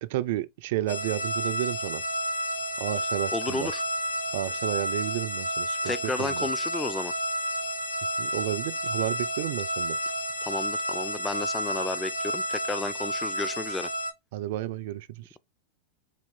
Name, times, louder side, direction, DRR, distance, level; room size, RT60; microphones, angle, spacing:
voice 1, 0.0-2.0 2.8-3.7 4.3-6.5 8.2-10.0 14.3-15.4, right 14 dB, 65° right, 0.3 m, -32 dB
sound 1, 0.9-14.1, equal, 85° left, 0.9 m, -31 dB
voice 2, 3.3-3.8 5.8-7.1 10.4-13.9, left 3 dB, 15° left, 0.4 m, -32 dB
4.2 x 2.4 x 3.6 m
hypercardioid pair, 95°, 0 cm